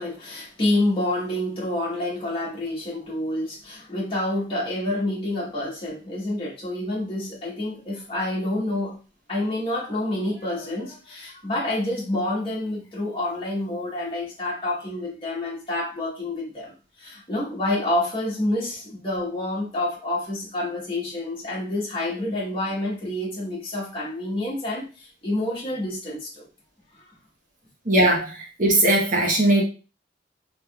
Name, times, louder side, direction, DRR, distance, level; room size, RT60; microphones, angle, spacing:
voice 1, 0.0-9.0 9.3-26.5 26.9-27.0, left 1 dB, 30° left, 1.2 m, -28 dB
voice 2, 27.9-29.6, right 1 dB, 45° right, 0.9 m, -19 dB
3.5 x 3.0 x 2.3 m
head